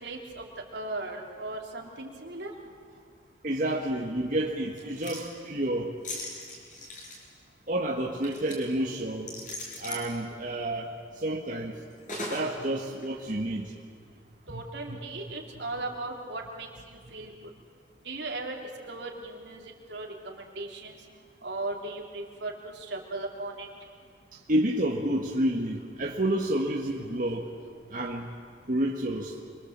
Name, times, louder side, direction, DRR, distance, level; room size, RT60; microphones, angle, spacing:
voice 1, 0.0-0.5 0.7-2.5 14.5-17.3 18.0-18.6 18.9-19.6 19.9-21.0 21.4-23.7, right 2 dB, 75° right, 0 dB, 3.4 m, -37 dB
voice 2, 3.4-5.9 7.7-9.3 9.8-10.9 11.2-11.7 12.3-13.7 14.5-14.6 14.9-15.0 24.5-27.5 27.9-28.3 28.7-29.3, right 1 dB, 45° right, -1 dB, 1.6 m, -29 dB
sound 1, 4.8-5.3 6.0-7.2 8.2-8.6 9.3-10.1 12.1-12.5 13.0-13.1, left 2 dB, 45° left, 6.0 m, -38 dB
27.5 x 23.5 x 7.4 m, 2.1 s
head